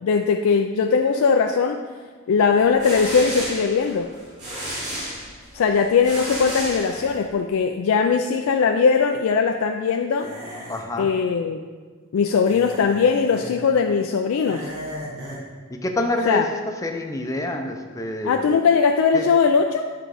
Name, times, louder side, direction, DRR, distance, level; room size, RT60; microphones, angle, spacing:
voice 1, 0.0-1.8 2.3-4.1 5.5-10.3 11.0-11.6 12.1-14.7 16.3-16.5 18.2-19.9, left 5 dB, 85° left, 4 dB, 0.4 m, -20 dB
sound 1, 2.5-7.4, right 1 dB, 35° right, 2.2 m, -33 dB
sound 2, 6.4-7.3 10.2-10.8 12.5-13.5 14.4-15.5, equal, 85° right, 2.2 m, -37 dB
voice 2, 10.7-11.1 15.7-16.5 16.8-18.6 19.1-19.3, left 1 dB, 15° left, 4 dB, 0.5 m, -27 dB
8.8 x 3.7 x 4.8 m, 1.5 s
head